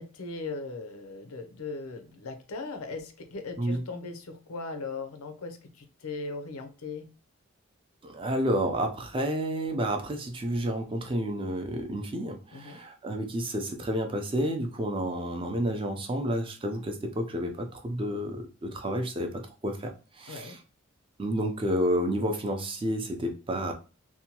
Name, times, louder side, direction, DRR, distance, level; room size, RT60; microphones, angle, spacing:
voice 1, 0.0-7.1 12.5-12.8 20.3-20.6, left 3 dB, 90° left, 0.6 m, -38 dB
voice 2, 8.0-20.6 21.2-23.7, equal, 25° right, 0.4 m, -30 dB
2.7 x 2.2 x 2.8 m
head